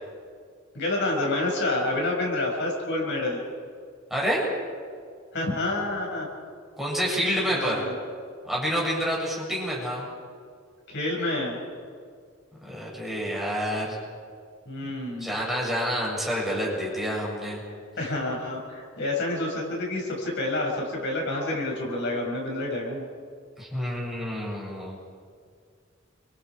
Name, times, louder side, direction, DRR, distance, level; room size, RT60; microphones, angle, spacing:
voice 1, 0.7-3.4 5.3-6.3 7.5-7.9 10.9-11.6 14.6-15.3 18.0-23.0, left 2 dB, 60° left, -2 dB, 6.7 m, -28 dB
voice 2, 4.1-4.4 6.8-7.8 8.4-10.0 12.6-14.0 15.2-17.6 23.6-25.0, equal, ahead, -5 dB, 7.5 m, -28 dB
29.5 x 26.0 x 5.0 m, 2.1 s
head